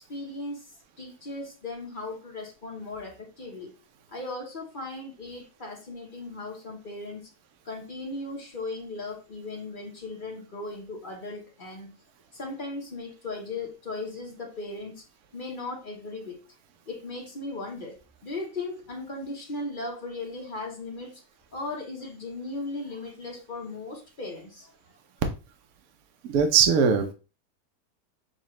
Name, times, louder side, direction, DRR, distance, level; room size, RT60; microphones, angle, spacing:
voice 1, 0.1-0.6 1.0-3.7 4.1-7.3 7.6-11.9 12.3-15.0 15.3-16.4 16.9-18.0 18.2-21.2 21.5-24.7, left 2 dB, 35° left, 0.9 m, -37 dB
voice 2, 26.2-27.1, right 7 dB, 70° right, 1.0 m, -20 dB
6.6 x 2.4 x 3.1 m
omnidirectional pair, 1.7 m